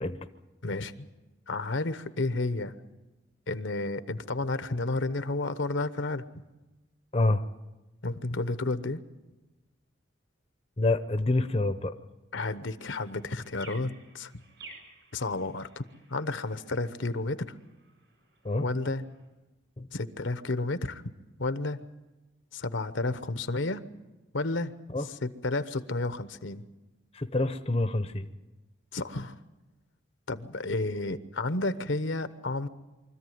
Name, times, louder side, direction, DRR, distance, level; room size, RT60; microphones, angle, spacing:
voice 1, 0.6-1.1 1.5-2.7 3.5-6.2 8.0-9.0 12.3-14.3 15.1-15.8 16.1-17.5 18.6-19.0 19.9-21.1 21.4-21.8 22.5-23.8 24.3-24.7 25.0-26.6 28.9-29.4 30.3-32.7, left 2 dB, 75° left, 12 dB, 1.0 m, -31 dB
voice 2, 7.1-7.4 10.8-11.9 18.4-18.7 19.8-19.9 24.9-25.1 27.1-28.3, left 2 dB, 30° left, 9 dB, 0.7 m, -27 dB
sound 1, 13.0-19.3, right 2 dB, 70° right, 7.7 m, -54 dB
24.5 x 14.0 x 9.3 m, 1.1 s
head